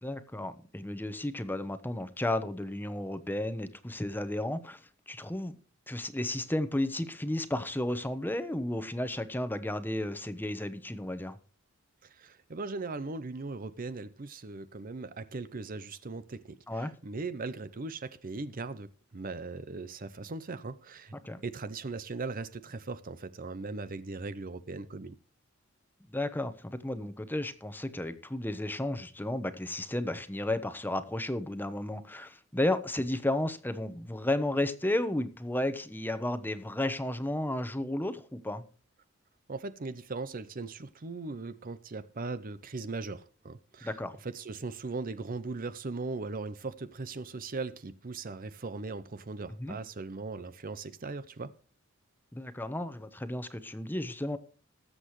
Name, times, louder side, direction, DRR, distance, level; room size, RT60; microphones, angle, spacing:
voice 1, 0.0-5.5 5.9-11.4 16.7-16.9 21.2-21.4 26.1-38.6 43.8-44.2 49.6-49.8 52.3-54.4, left 1 dB, 10° left, 1.0 m, -33 dB
voice 2, 12.0-21.1 21.4-25.2 39.5-51.5, right 3 dB, 40° right, 0.7 m, -39 dB
20.0 x 7.7 x 3.1 m
head